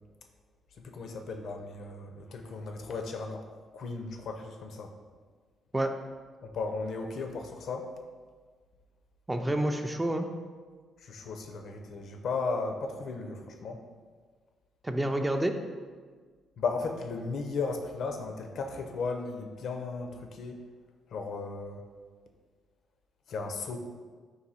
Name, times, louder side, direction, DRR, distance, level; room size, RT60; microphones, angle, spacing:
voice 1, 0.8-3.5 3.7-4.9 6.5-7.9 11.0-13.8 16.6-20.6 21.1-21.8 23.3-23.8, left 4 dB, 65° left, 4 dB, 0.4 m, -35 dB
voice 2, 9.3-10.3 14.8-15.6, right 1 dB, 15° right, 6 dB, 0.3 m, -28 dB
3.9 x 2.6 x 4.1 m, 1.5 s
cardioid pair, 90°, 0 cm